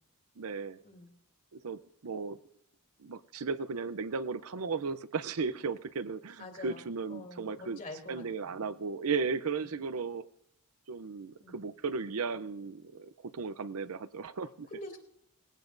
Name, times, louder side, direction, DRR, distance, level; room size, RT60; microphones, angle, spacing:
voice 1, 0.4-0.8 1.5-2.4 3.0-7.8 8.1-10.2 10.9-14.7, right 4 dB, 75° right, 13 dB, 0.6 m, -35 dB
voice 2, 6.4-6.8 7.1-8.5 11.4-11.6 14.7-15.0, left 2 dB, 35° left, 2 dB, 2.8 m, -46 dB
19.5 x 16.5 x 2.6 m, 0.76 s
head